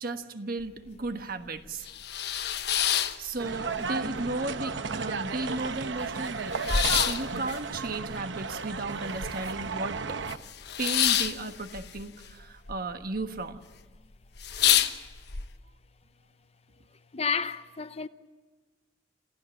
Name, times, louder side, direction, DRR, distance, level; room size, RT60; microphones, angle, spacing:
voice 1, 0.0-1.9 3.2-6.7 7.0-10.2 10.8-13.6, right 2 dB, 55° right, 1.4 m, -35 dB
sound 1, 0.6-0.7 1.1-1.2 1.7-3.9 4.2-4.9 5.3-5.4 5.5-9.7 10.0-12.8 13.0-13.6 13.9-14.0 14.3-15.4, left 9 dB, 65° left, 1.1 m, -28 dB
sound 2, 3.4-10.4, right 5 dB, 80° right, 1.0 m, -34 dB
voice 2, 17.1-18.1, left 5 dB, 35° left, 0.7 m, -30 dB
27.5 x 15.5 x 9.9 m
head